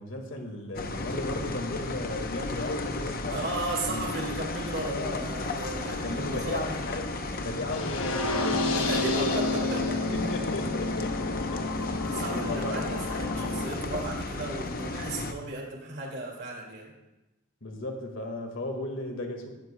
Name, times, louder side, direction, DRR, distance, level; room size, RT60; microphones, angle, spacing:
voice 1, 0.0-3.4 3.9-4.1 4.8-5.3 6.0-9.2 9.5-9.6 10.1-11.7 12.1-12.9 17.6-19.5, left 1 dB, 60° left, 3 dB, 1.8 m, -35 dB
sound 1, 0.7-15.3, left 2 dB, 40° left, 0.8 m, -34 dB
voice 2, 3.3-6.6 8.7-10.0 11.8-16.9, right 2 dB, 50° right, -1 dB, 2.2 m, -35 dB
sound 2, 7.7-13.7, left 2 dB, 75° left, 1.1 m, -30 dB
17.5 x 12.5 x 2.2 m, 1.0 s
head